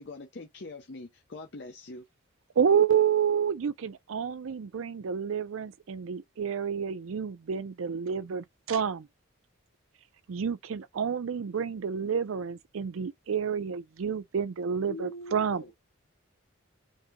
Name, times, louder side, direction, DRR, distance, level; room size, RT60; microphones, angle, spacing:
voice 1, 0.0-2.0, left 2 dB, 55° left, 0.6 m, -43 dB
voice 2, 2.6-9.1 10.3-15.6, right 7 dB, 75° right, 0.4 m, -29 dB
voice 3, 14.8-15.7, left 1 dB, 70° left, 1.8 m, -42 dB
5.4 x 2.9 x 2.2 m
head